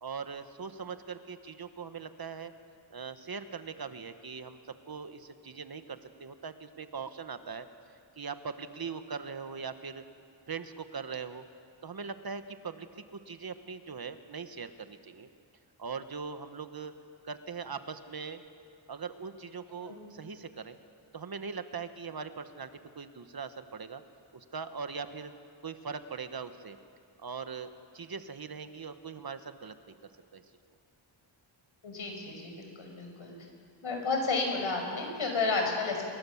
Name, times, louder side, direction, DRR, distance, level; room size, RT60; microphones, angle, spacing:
voice 1, 0.0-2.5 2.9-4.6 4.9-7.6 8.2-10.0 10.5-11.5 11.8-15.3 15.8-16.9 17.2-18.4 18.9-20.8 21.1-24.0 24.3-25.3 25.6-26.8 27.2-29.9 30.3-30.4, right 5 dB, 50° right, 9 dB, 1.3 m, -41 dB
voice 2, 31.8-33.3 33.8-36.1, left 3 dB, 75° left, 2 dB, 6.0 m, -31 dB
28.5 x 22.0 x 7.2 m, 2.4 s
wide cardioid pair, 115°, 48 cm